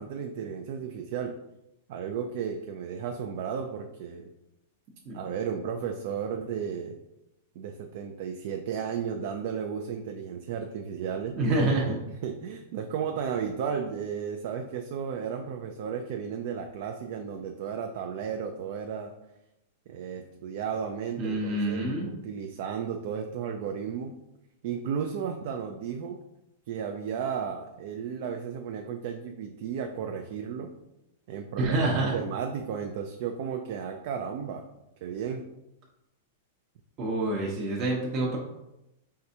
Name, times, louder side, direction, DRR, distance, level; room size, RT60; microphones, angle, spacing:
voice 1, 0.0-1.4 1.9-4.3 5.1-7.0 7.6-11.4 12.1-19.1 19.9-24.2 24.6-26.2 26.7-30.7 31.3-34.7 35.0-35.5, right 7 dB, 55° right, 4 dB, 0.4 m, -34 dB
voice 2, 11.4-12.0 21.2-22.1 31.6-32.1 37.0-38.4, right 2 dB, 35° right, -2 dB, 0.8 m, -27 dB
4.6 x 3.4 x 2.7 m, 0.90 s
supercardioid pair, 145°, 0 cm